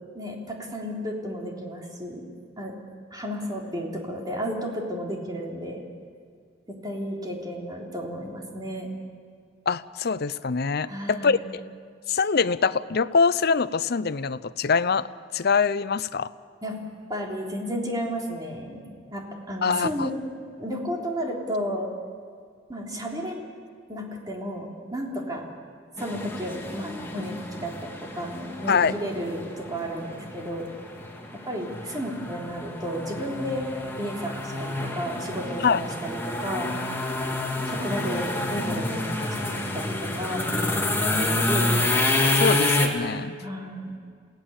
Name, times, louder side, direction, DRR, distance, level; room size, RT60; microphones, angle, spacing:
voice 1, 0.1-2.2 2.6-2.7 3.1-5.8 6.7-8.9 10.9-11.5 16.6-16.8 17.1-18.8 19.1-20.1 20.6-21.9 22.7-23.4 23.9-25.4 26.0-30.6 31.4-33.7 34.0-36.7 37.6-41.8 43.4-44.0, equal, 20° right, -1 dB, 3.5 m, -32 dB
voice 2, 9.7-11.6 12.1-15.1 15.3-16.3 19.6-20.1 28.7-28.9 35.6-35.8 42.3-43.4, left 5 dB, 55° left, 15 dB, 0.6 m, -24 dB
sound 1, 26.0-42.9, left 2 dB, 10° left, 2.3 m, -28 dB
28.5 x 17.0 x 7.2 m, 2.1 s
head